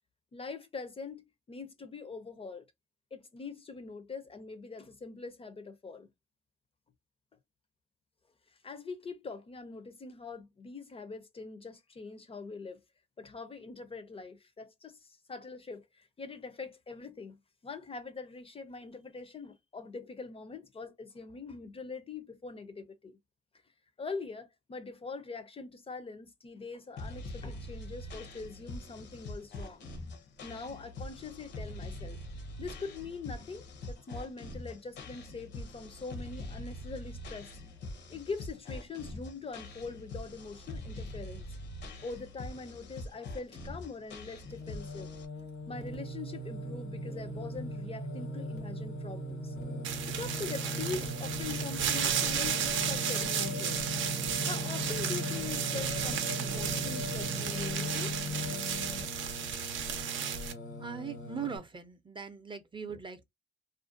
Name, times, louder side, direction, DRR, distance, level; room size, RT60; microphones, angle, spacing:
voice 1, 0.3-2.6 3.1-6.1 8.6-12.8 13.2-17.4 17.6-23.2 24.0-29.8 30.4-32.2 32.6-37.5 38.1-41.5 42.0-45.1 45.7-49.5 50.1-53.8 54.5-58.2, left 4 dB, 30° left, 0.5 m, -43 dB
sound 1, 27.0-45.3, left 1 dB, 65° left, 0.7 m, -44 dB
Singing, 44.4-61.6, left 1 dB, 90° left, 1.2 m, -38 dB
sound 2, 49.8-60.5, right 9 dB, 75° right, 0.5 m, -34 dB
voice 2, 60.1-63.2, right 6 dB, 25° right, 0.5 m, -41 dB
2.4 x 2.1 x 2.4 m
cardioid pair, 90°, 20 cm